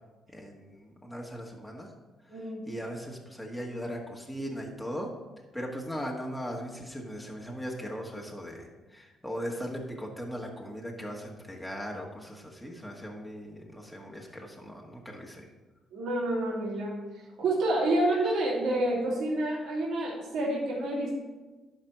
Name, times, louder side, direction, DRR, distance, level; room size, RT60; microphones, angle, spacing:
voice 1, 0.3-1.9 2.7-5.1 5.5-15.4, equal, 5° left, -2 dB, 1.8 m, -38 dB
voice 2, 2.3-2.6 15.9-16.9 17.4-21.1, right 1 dB, 70° right, -6 dB, 3.1 m, -28 dB
11.5 x 5.0 x 6.1 m, 1.2 s
cardioid pair, 90°, 0 cm